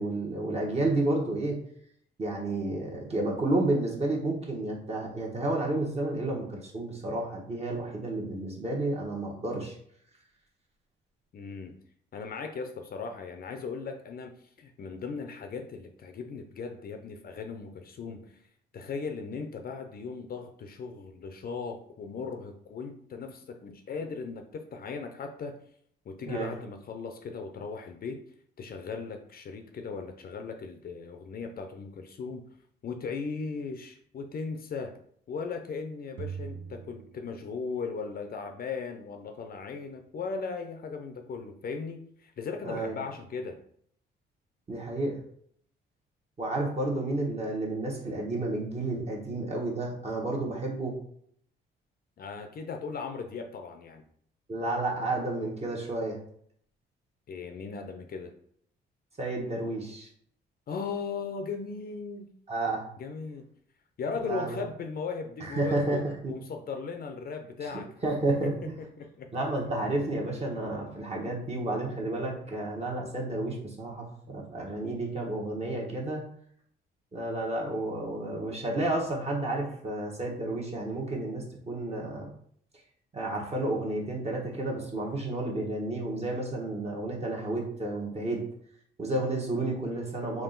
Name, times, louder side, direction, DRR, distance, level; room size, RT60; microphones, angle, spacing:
voice 1, 0.0-1.6 2.2-9.7 26.2-26.5 42.6-42.9 44.7-45.2 46.4-50.9 54.5-56.2 59.2-60.1 62.5-62.8 64.2-64.6 65.4-66.3 67.6-67.7 68.0-68.7 69.3-76.2 77.1-82.3 83.1-88.4 89.0-90.4, right 2 dB, 30° right, -2 dB, 1.1 m, -31 dB
voice 2, 11.3-11.7 12.1-18.4 18.7-25.6 26.1-28.2 28.6-32.4 32.8-34.9 35.3-43.6 52.2-54.0 57.3-58.3 60.7-62.3 63.0-63.4 64.0-67.9 68.4-69.3, left 5 dB, 50° left, 5 dB, 0.5 m, -37 dB
sound 1, 36.2-38.0, right 7 dB, 65° right, 0.5 m, -42 dB
3.6 x 2.5 x 3.8 m, 0.64 s
cardioid pair, 90°, 20 cm